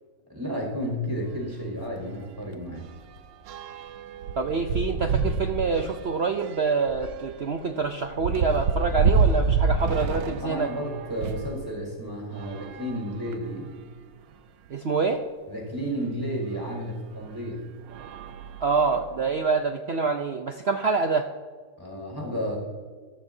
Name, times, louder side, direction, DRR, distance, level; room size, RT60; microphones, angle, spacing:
voice 1, 0.3-2.9 10.4-13.7 15.5-17.6 21.8-22.6, equal, 10° right, -1 dB, 5.5 m, -32 dB
sound 1, 1.1-1.3 1.6-1.8 2.1-11.6 12.3-13.6 14.3-14.4 14.7-14.8 16.5-16.6 17.2-17.5 17.9-19.1, right 4 dB, 85° right, 1.5 m, -28 dB
voice 2, 4.4-10.7 14.7-15.2 18.6-21.3, right 4 dB, 65° right, 5 dB, 0.6 m, -26 dB
24.5 x 14.0 x 2.7 m, 1.5 s
omnidirectional pair, 1.9 m